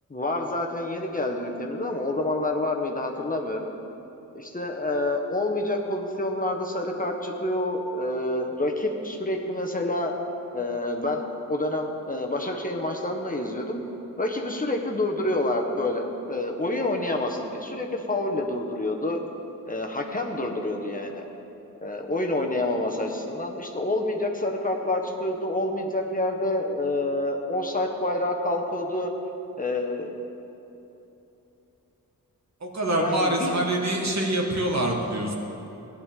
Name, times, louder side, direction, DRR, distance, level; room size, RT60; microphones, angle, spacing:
voice 1, 0.1-3.7 4.3-10.1 10.5-13.8 14.2-19.2 19.6-21.3 21.8-29.1 29.6-30.1 33.0-33.8, left 1 dB, 25° left, 1 dB, 1.2 m, -28 dB
voice 2, 32.6-35.3, right 1 dB, 50° right, -1 dB, 1.9 m, -25 dB
15.5 x 10.5 x 3.8 m, 3.0 s
cardioid pair, 55°, 35 cm